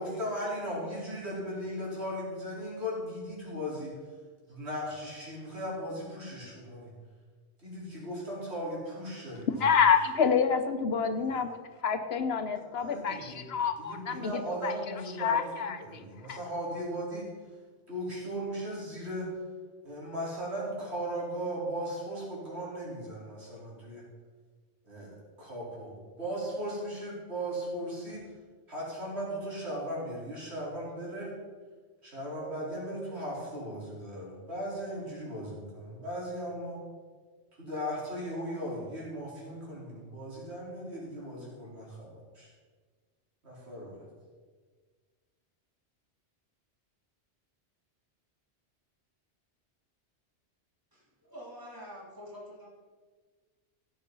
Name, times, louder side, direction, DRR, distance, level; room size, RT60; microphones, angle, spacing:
voice 1, 0.0-3.9 4.5-6.9 7.6-9.7 11.1-11.3 12.7-17.3 17.9-19.3 19.8-24.0 24.8-25.1 25.4-28.2 28.7-31.3 32.0-36.8 37.6-42.5 43.4-44.0, equal, 70° right, -6 dB, 4.6 m, -37 dB
voice 2, 9.6-11.6 11.8-14.7 15.2-15.8 16.3-16.4, left 6 dB, 65° left, 10 dB, 0.9 m, -27 dB
voice 3, 50.9-52.7, equal, 20° right, -4 dB, 3.2 m, -46 dB
16.5 x 6.8 x 5.3 m, 1.5 s
omnidirectional pair, 1.2 m